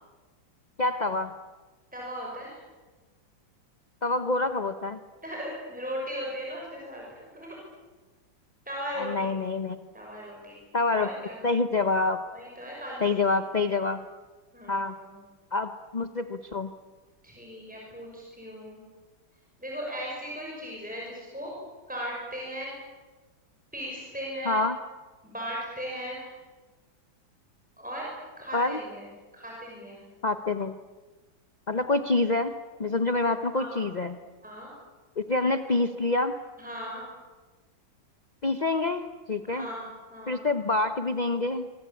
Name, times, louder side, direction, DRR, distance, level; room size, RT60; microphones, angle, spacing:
voice 1, 0.8-1.3 4.0-5.0 9.0-9.8 10.7-11.1 11.4-12.2 13.0-14.0 14.7-14.9 15.5-16.7 24.5-24.7 28.5-28.8 30.2-30.7 31.7-32.5 32.8-34.2 35.2-36.4 38.4-39.6 40.3-41.7, left 3 dB, 40° left, 8 dB, 0.6 m, -26 dB
voice 2, 1.9-2.6 5.2-7.6 8.7-9.4 9.9-10.6 10.9-11.4 12.3-13.0 14.5-15.2 17.2-18.8 19.6-21.5 21.9-22.7 23.7-24.6 25.2-26.3 27.8-28.1 28.4-30.0 33.5-33.9 34.4-34.7 36.6-37.0 39.5-39.8 40.1-40.4, equal, 5° right, -3 dB, 6.1 m, -37 dB
25.0 x 25.0 x 8.5 m, 1.3 s
omnidirectional pair, 2.2 m